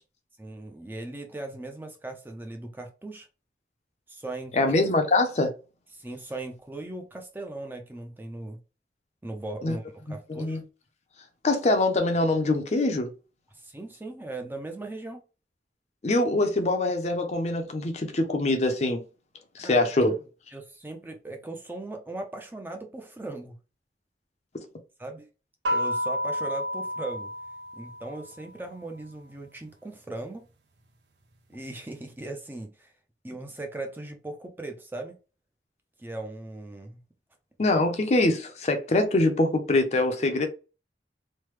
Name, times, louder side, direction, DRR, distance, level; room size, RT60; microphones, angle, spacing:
voice 1, 0.4-3.3 4.1-4.7 5.9-8.6 9.2-10.6 13.5-15.2 19.6-19.9 20.5-23.6 25.0-25.3 25.7-27.3 27.7-30.5 31.5-32.9 33.2-35.2 36.0-37.0, right 2 dB, 10° right, 0.4 m, -38 dB
voice 2, 4.5-5.5 9.6-9.8 10.3-10.6 11.4-13.1 16.0-19.0 19.6-20.1 24.5-24.7 37.6-40.5, left 2 dB, 40° left, 0.5 m, -24 dB
sound 1, 25.6-28.4, equal, 75° right, 0.6 m, -30 dB
3.2 x 2.1 x 3.1 m
head